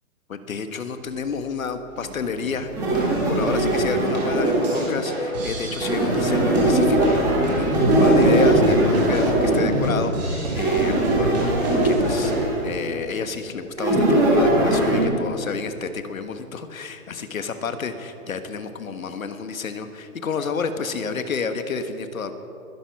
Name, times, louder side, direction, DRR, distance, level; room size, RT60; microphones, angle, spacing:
voice 1, 0.3-2.7 3.2-11.5 11.8-22.3, left 5 dB, 70° left, 9 dB, 1.5 m, -30 dB
sound 1, 1.9-12.4, right 1 dB, 30° right, 3.9 m, -29 dB
sound 2, 2.7-4.9 5.8-10.0 10.5-12.7 13.8-15.0, right 1 dB, 5° right, 1.6 m, -20 dB
21.5 x 11.5 x 5.9 m, 2.7 s
hypercardioid pair, 175°, 43 cm